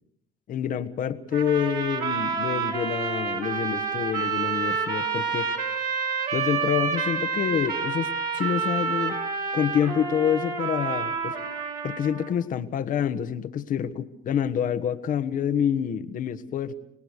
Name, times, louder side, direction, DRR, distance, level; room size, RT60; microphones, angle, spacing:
voice 1, 0.5-5.6 6.3-9.2 9.5-11.4 11.8-16.7, left 8 dB, 55° left, 9 dB, 1.4 m, -27 dB
sound 1, 1.3-12.3, right 5 dB, 65° right, 4.9 m, -28 dB
26.5 x 18.5 x 6.6 m, 0.73 s
supercardioid pair, 70°, 17 cm